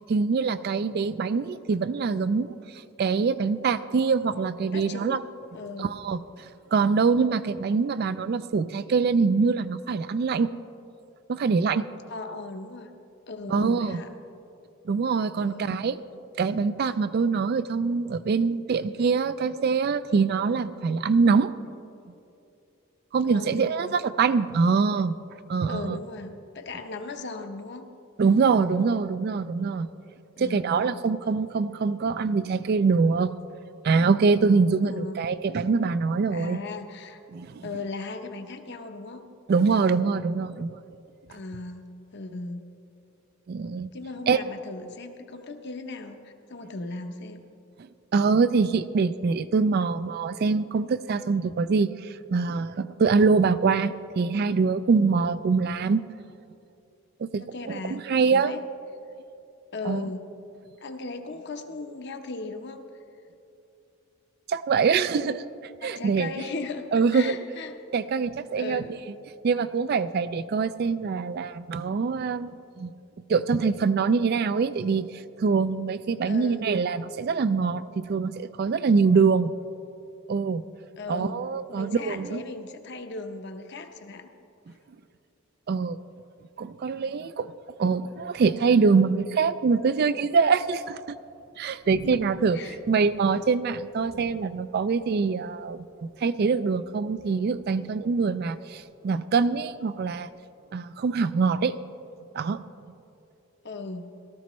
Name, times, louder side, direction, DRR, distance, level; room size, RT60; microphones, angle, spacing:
voice 1, 0.1-2.5 3.0-5.2 5.8-6.2 6.7-10.5 11.3-11.9 13.5-14.0 14.9-16.0 16.4-21.5 23.1-25.2 25.5-26.0 28.2-29.9 30.4-33.3 33.8-36.6 37.3-37.6 39.5-40.8 43.5-43.9 44.3-44.4 48.1-56.0 57.3-58.5 59.9-60.0 64.5-65.4 65.8-66.3 66.9-67.3 67.9-68.8 69.4-72.9 73.3-79.5 80.3-80.6 81.1-82.4 85.7-86.0 86.6-87.5 87.8-91.2 91.6-92.6 92.9-100.3 100.7-101.7 102.3-102.6, right 5 dB, 45° right, 14 dB, 0.3 m, -24 dB
voice 2, 4.6-5.2 5.5-5.9 12.1-12.9 13.3-14.1 15.4-15.8 23.2-24.0 25.7-27.9 30.4-31.0 34.8-35.2 36.3-37.2 37.6-39.3 41.3-41.9 42.1-42.6 43.9-47.4 57.4-58.6 59.7-60.3 60.8-62.8 65.8-67.8 68.6-69.0 76.3-76.6 81.0-81.4 81.7-84.3 92.0-92.3 92.5-92.8 103.6-104.1, left 3 dB, 50° left, 6 dB, 0.8 m, -37 dB
Thunder, 89.3-100.3, right 1 dB, 75° right, 1.6 m, -53 dB
18.0 x 13.0 x 3.1 m, 2.6 s
head